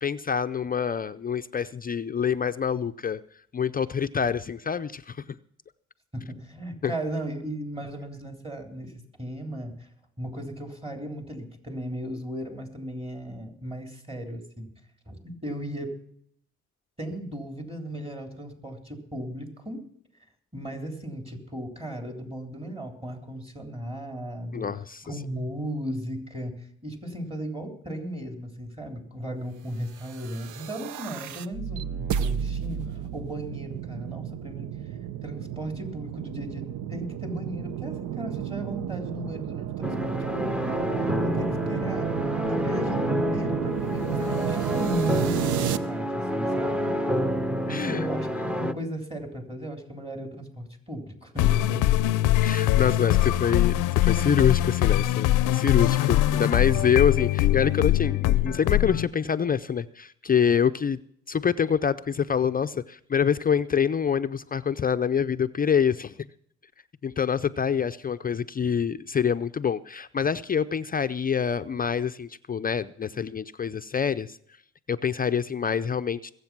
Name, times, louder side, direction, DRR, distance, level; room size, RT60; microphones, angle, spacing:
voice 1, 0.0-3.2 3.5-5.2 6.8-6.9 24.5-25.0 47.7-48.1 52.4-61.0 61.3-66.3 67.0-74.4 74.9-76.2, left 7 dB, 30° left, 11 dB, 0.5 m, -26 dB
voice 2, 6.1-8.9 9.2-9.9 10.2-14.7 15.1-15.9 17.0-19.8 20.5-24.7 25.0-40.8 41.2-42.1 42.5-46.9 47.6-51.9, equal, 20° right, 3 dB, 3.2 m, -36 dB
sound 1, 30.0-45.8, right 10 dB, 80° right, 0.8 m, -32 dB
sound 2, 39.8-48.7, equal, 5° right, 0.8 m, -28 dB
sound 3, 51.4-59.1, left 14 dB, 90° left, 0.6 m, -22 dB
21.0 x 8.1 x 6.0 m, 0.68 s
cardioid pair, 90°, 30 cm